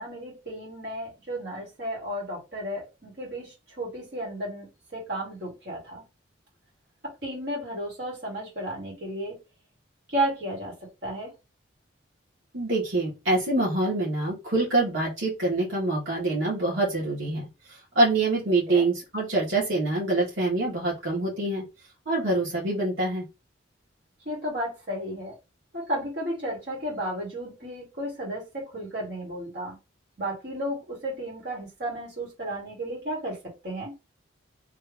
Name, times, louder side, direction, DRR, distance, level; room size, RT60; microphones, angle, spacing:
voice 1, 0.0-6.0 7.2-9.4 10.1-10.7 11.0-11.3 18.7-18.9 24.3-25.3 25.7-29.8 30.2-33.4 33.6-33.9, right 1 dB, 55° right, 2.0 m, -33 dB
voice 2, 12.5-17.5 17.9-21.6 22.0-23.2, right 2 dB, 80° right, 1.7 m, -25 dB
3.4 x 2.7 x 3.5 m
head